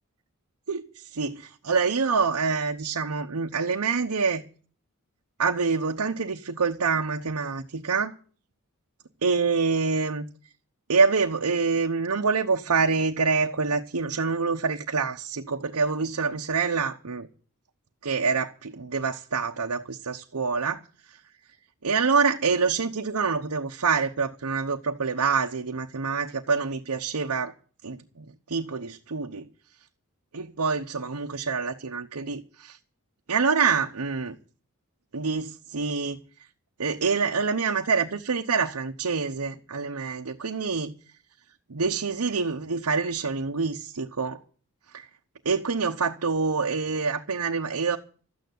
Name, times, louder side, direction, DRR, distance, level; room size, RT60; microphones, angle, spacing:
voice 1, 0.7-4.4 5.4-8.1 9.2-10.3 10.9-17.3 18.0-21.2 21.8-27.5 27.8-29.5 30.3-32.8 33.3-34.3 35.1-36.2 36.8-40.9 41.7-44.4 44.9-45.1 45.4-48.0, right 5 dB, 85° right, 0.9 m, -26 dB
13.0 x 9.3 x 9.3 m
head